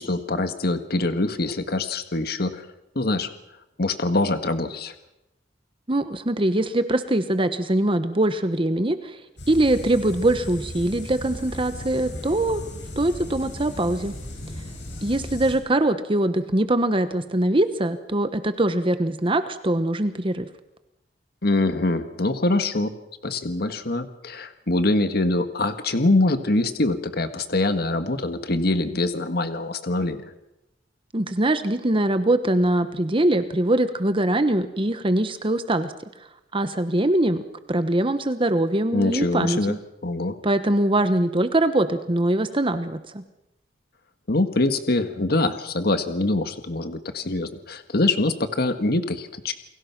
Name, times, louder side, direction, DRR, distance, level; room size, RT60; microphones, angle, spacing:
voice 1, 0.0-2.7 2.9-3.3 3.8-4.9 21.4-22.9 23.2-30.2 38.9-39.8 40.0-40.4 44.3-49.5, left 2 dB, 60° left, 8 dB, 1.7 m, -24 dB
voice 2, 5.9-9.2 9.5-12.6 13.0-14.1 15.0-20.5 31.1-35.9 36.5-37.4 37.7-39.8 40.4-43.2, right 1 dB, 30° right, 10 dB, 1.1 m, -22 dB
sound 1, 9.4-15.6, left 1 dB, 75° left, 7.9 m, -36 dB
29.0 x 22.0 x 6.0 m, 0.89 s
head